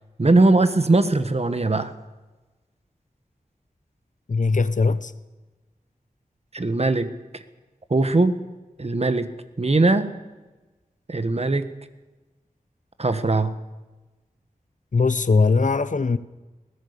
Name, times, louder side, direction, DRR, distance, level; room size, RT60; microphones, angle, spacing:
voice 1, 0.2-1.9 6.5-7.1 7.9-8.4 8.8-9.3 9.6-10.1 11.1-11.7 13.0-13.6, right 2 dB, 45° right, 11 dB, 1.6 m, -20 dB
voice 2, 4.3-5.1 14.9-16.2, left 4 dB, 60° left, 15 dB, 0.9 m, -20 dB
21.0 x 18.0 x 6.9 m, 1.2 s
wide cardioid pair, 65°, 15 cm